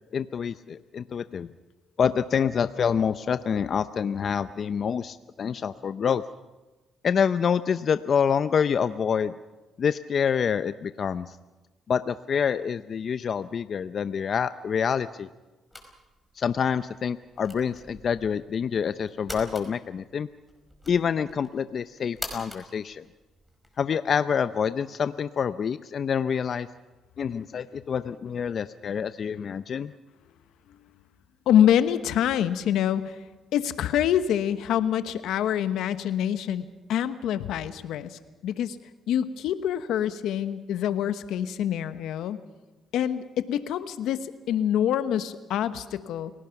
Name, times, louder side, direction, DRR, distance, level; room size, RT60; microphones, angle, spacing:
voice 1, 0.1-1.5 2.0-6.2 7.0-9.3 9.8-11.4 11.9-15.3 16.4-20.3 20.9-23.0 23.8-26.7 27.2-29.9, left 7 dB, 55° left, 12 dB, 0.6 m, -27 dB
sound 1, 15.7-23.8, left 1 dB, ahead, 5.0 m, -44 dB
voice 2, 31.5-33.2 33.5-38.8 39.1-42.4 42.9-46.3, left 10 dB, 85° left, 12 dB, 1.1 m, -26 dB
29.5 x 17.5 x 5.9 m, 1.2 s
cardioid pair, 90°, 0 cm